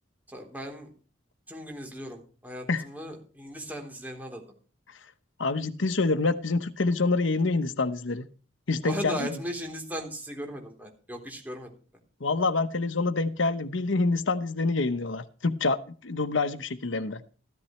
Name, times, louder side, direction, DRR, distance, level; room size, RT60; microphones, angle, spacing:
voice 1, 0.3-0.9 1.5-4.4 8.8-11.7, equal, 10° right, 1 dB, 3.5 m, -37 dB
voice 2, 5.4-8.3 8.7-9.3 12.2-17.2, left 3 dB, 80° left, 12 dB, 0.9 m, -27 dB
15.0 x 13.5 x 3.2 m, 0.39 s
head